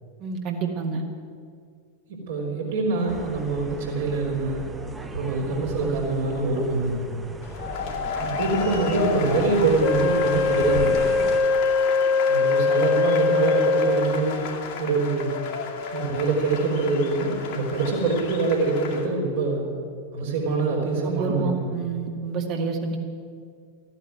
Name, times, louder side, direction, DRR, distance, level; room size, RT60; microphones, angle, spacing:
voice 1, 0.2-1.0 21.0-23.0, right 5 dB, 40° right, 3 dB, 2.1 m, -28 dB
voice 2, 2.3-4.7 5.1-7.1 8.2-11.0 12.3-14.4 14.8-15.3 15.9-19.7 20.1-21.8, right 3 dB, 60° right, -3 dB, 3.8 m, -24 dB
sound 1, 3.1-11.4, right 3 dB, 15° right, 1.1 m, -37 dB
sound 2, 7.4-19.1, left 6 dB, 50° left, 2.3 m, -33 dB
Wind instrument woodwind instrument, 9.8-14.4, left 4 dB, 30° left, 0.9 m, -22 dB
14.0 x 10.0 x 9.2 m, 2.2 s
figure-of-eight pair, 90°, 0 cm